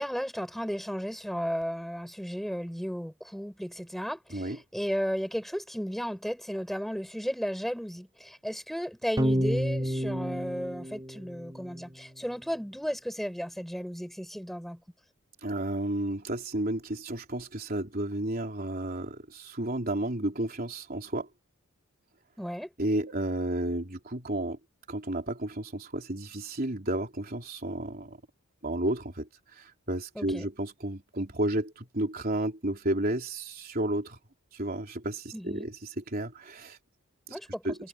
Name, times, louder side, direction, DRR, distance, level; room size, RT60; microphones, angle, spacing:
voice 1, 0.0-14.8 22.4-22.7 30.1-30.5 35.3-35.7 37.3-37.6, equal, ahead, 6.3 m, -34 dB
sound 1, 9.2-11.8, equal, 20° right, 2.6 m, -30 dB
voice 2, 15.4-21.3 22.8-24.6 24.9-28.2 28.6-34.2 34.5-36.8 37.3-37.4 37.6-37.8, right 1 dB, 45° right, 3.6 m, -32 dB
head